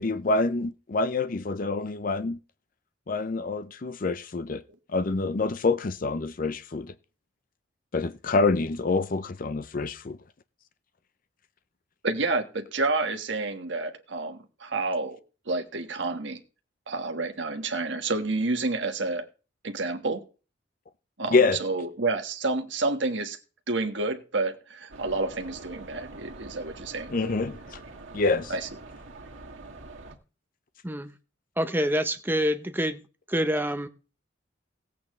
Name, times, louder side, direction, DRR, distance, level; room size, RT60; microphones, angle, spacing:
voice 1, 0.0-2.4 3.1-4.6 4.9-6.9 7.9-10.2 21.3-21.6 27.1-27.8 28.1-28.5, left 3 dB, 45° left, 0.5 m, -26 dB
voice 2, 12.0-15.2 15.5-16.4 16.9-19.3 19.6-20.2 21.2-23.4 23.7-27.1 28.5-28.7, right 3 dB, 70° right, 1.4 m, -29 dB
sound 1, 24.9-30.1, right 2 dB, 85° right, 1.8 m, -44 dB
voice 3, 31.6-33.0 33.3-33.9, equal, 10° right, 0.8 m, -26 dB
17.5 x 8.3 x 3.2 m
head